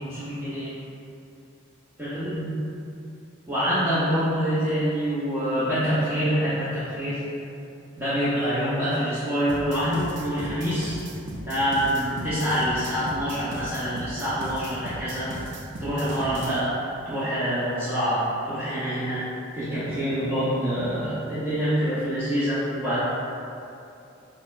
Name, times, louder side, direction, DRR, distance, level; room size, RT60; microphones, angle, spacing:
voice 1, 0.1-0.7 2.0-2.5 3.5-7.2 8.0-11.0 11.4-15.3 15.8-16.8 17.0-19.3 19.5-23.0, equal, 10° right, -14 dB, 0.6 m, -26 dB
sound 1, 9.5-16.5, right 1 dB, 65° right, 0.4 m, -37 dB
4.2 x 2.1 x 2.4 m, 2.7 s
head